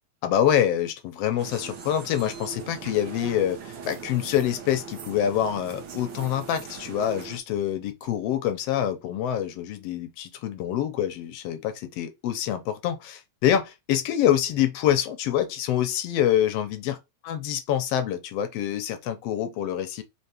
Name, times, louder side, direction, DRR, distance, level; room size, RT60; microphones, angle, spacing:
voice 1, 0.2-17.0 17.2-20.0, left 10 dB, 75° left, 1.5 m, -26 dB
sound 1, 1.4-7.4, right 6 dB, 75° right, 1.1 m, -40 dB
4.4 x 3.5 x 2.8 m
omnidirectional pair, 3.3 m